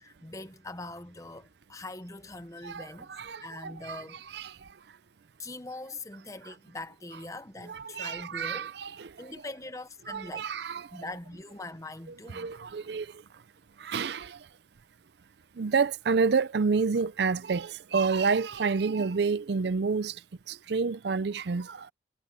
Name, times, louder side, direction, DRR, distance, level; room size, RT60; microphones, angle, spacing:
voice 1, 0.0-3.1 3.4-4.2 5.4-8.7 9.2-10.4 10.9-12.5, left 2 dB, 15° left, 1.0 m, -42 dB
voice 2, 2.6-4.5 7.7-9.1 10.1-10.9 12.3-13.1 13.8-14.4 15.6-20.1 20.5-21.9, right 5 dB, 60° right, 0.5 m, -29 dB
head